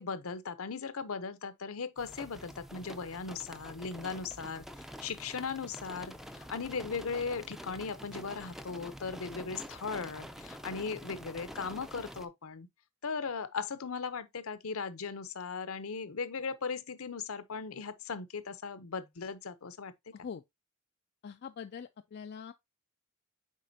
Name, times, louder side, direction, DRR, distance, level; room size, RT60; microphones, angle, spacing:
voice 1, 0.0-4.6 5.0-12.7 13.0-19.9, left 5 dB, 70° left, 0.7 m, -38 dB
sound 1, 2.0-12.3, equal, ahead, 0.5 m, -47 dB
voice 2, 20.1-20.4 21.2-22.5, left 6 dB, 50° left, 0.4 m, -43 dB
7.5 x 4.7 x 2.7 m
head